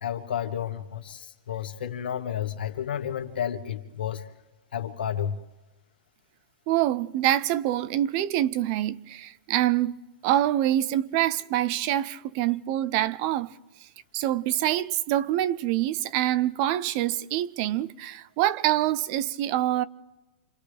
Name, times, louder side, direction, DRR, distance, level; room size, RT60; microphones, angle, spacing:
voice 1, 0.0-4.3 4.7-5.3, left 9 dB, 90° left, 1.6 m, -31 dB
voice 2, 6.7-13.5 14.1-19.8, right 13 dB, 45° right, 0.6 m, -25 dB
29.0 x 27.0 x 3.4 m
hypercardioid pair, 140°, 5 cm